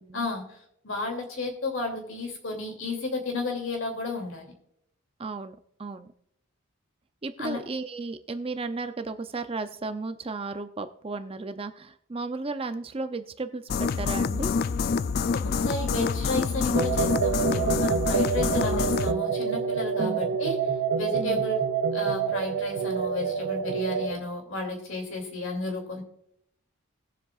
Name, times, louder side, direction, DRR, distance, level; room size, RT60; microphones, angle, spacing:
voice 1, 0.1-0.6 0.8-4.5 7.4-7.6 15.3-20.6 20.9-21.6 21.9-26.0, left 3 dB, 60° left, 3 dB, 2.6 m, -33 dB
voice 2, 5.2-6.1 7.2-14.5 20.0-20.2 21.2-21.4, right 3 dB, 25° right, 9 dB, 0.5 m, -34 dB
sound 1, 13.7-19.1, left 5 dB, 45° left, 0.3 m, -26 dB
sound 2, 16.7-24.1, right 6 dB, 90° right, 0.8 m, -27 dB
20.0 x 7.5 x 2.4 m, 0.73 s
head